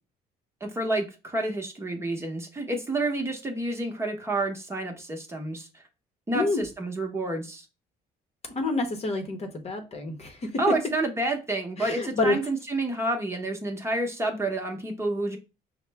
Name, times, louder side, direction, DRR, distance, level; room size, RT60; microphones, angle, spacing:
voice 1, 0.6-5.7 6.3-7.6 10.6-15.4, right 2 dB, 15° right, 0.9 m, -29 dB
voice 2, 8.6-10.6 11.8-12.4, left 2 dB, 40° left, 0.9 m, -28 dB
5.5 x 2.1 x 3.3 m
cardioid pair, 110°, 17 cm